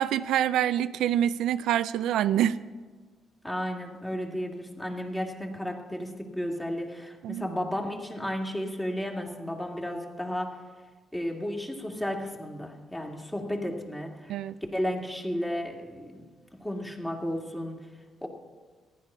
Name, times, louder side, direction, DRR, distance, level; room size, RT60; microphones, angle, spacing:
voice 1, 0.0-2.6 7.2-7.5 14.3-14.5, right 11 dB, 85° right, 14 dB, 0.3 m, -26 dB
voice 2, 3.4-10.6 11.1-14.4 14.7-16.2 16.5-17.9 18.2-18.3, equal, 10° left, 1 dB, 2.1 m, -33 dB
14.5 x 10.5 x 5.5 m, 1.4 s
cardioid pair, 85°, 0 cm